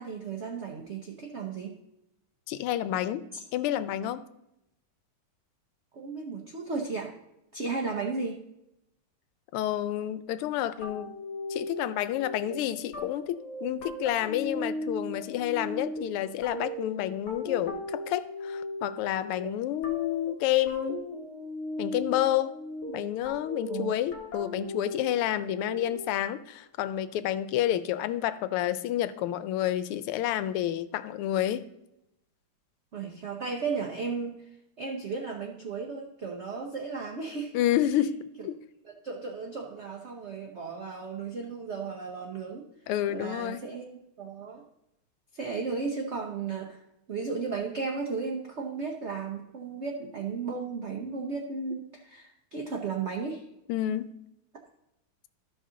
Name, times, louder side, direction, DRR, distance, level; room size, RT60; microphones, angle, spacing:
voice 1, 0.0-1.8 3.3-3.4 5.9-7.1 7.5-8.5 23.7-23.9 32.9-34.5 34.8-37.5 38.8-42.7 43.1-44.6 45.3-46.8 47.1-53.4, right 4 dB, 80° right, 1 dB, 0.6 m, -35 dB
voice 2, 2.5-3.3 3.5-4.2 9.5-11.1 11.5-21.0 21.8-22.6 22.9-31.6 37.5-38.6 42.9-43.6 53.7-54.1, left 12 dB, 90° left, 13 dB, 1.5 m, -29 dB
sound 1, 10.8-26.2, left 1 dB, 50° left, 1.9 m, -37 dB
13.0 x 5.3 x 3.7 m, 0.86 s
omnidirectional pair, 2.4 m